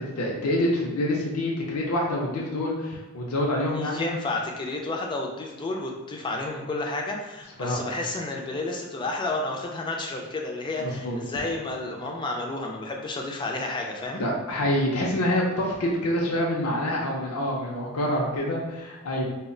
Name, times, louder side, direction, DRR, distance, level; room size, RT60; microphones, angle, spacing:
voice 1, 0.0-4.0 7.6-7.8 10.8-11.2 14.1-19.2, left 1 dB, 75° left, -2 dB, 0.5 m, -26 dB
voice 2, 3.7-14.2, left 2 dB, 20° left, 0 dB, 0.3 m, -31 dB
2.2 x 2.1 x 3.7 m, 1.2 s
head